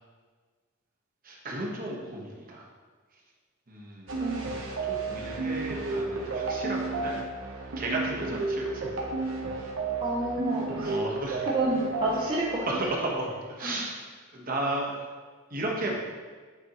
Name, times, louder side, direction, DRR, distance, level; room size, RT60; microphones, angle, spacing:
voice 1, 1.3-2.6 3.7-4.1 4.9-7.2 7.8-8.9 10.8-11.4 12.7-13.3 13.6-14.0 14.3-14.9 15.5-16.0, right 2 dB, 45° right, -2 dB, 1.1 m, -33 dB
sound 1, 4.1-12.8, right 3 dB, 85° right, 1.0 m, -32 dB
voice 2, 4.2-4.5 8.3-8.4 10.0-11.0 11.5-12.7 13.6-13.9, right 1 dB, 25° right, -5 dB, 0.7 m, -30 dB
7.9 x 4.2 x 3.0 m, 1.5 s
head